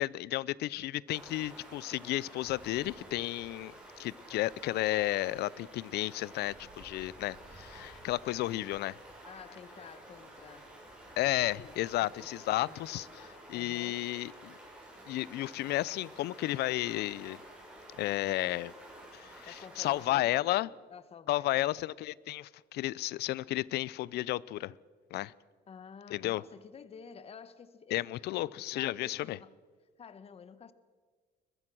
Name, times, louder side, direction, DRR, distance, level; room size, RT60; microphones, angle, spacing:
voice 1, 0.0-9.0 11.2-14.5 15.1-17.4 18.0-18.7 19.1-20.7 21.3-24.7 25.1-25.3 26.1-26.4 27.9-29.4, left 16 dB, 75° left, 0.5 m, -33 dB
Stream, 1.1-20.1, right 1 dB, 5° right, 7.9 m, -51 dB
voice 2, 9.2-10.7 11.6-12.9 13.5-14.0 19.5-21.8 25.7-28.0 28.3-29.5 30.0-30.7, left 6 dB, 35° left, 1.1 m, -51 dB
22.5 x 21.0 x 6.2 m
cardioid pair, 110°, 17 cm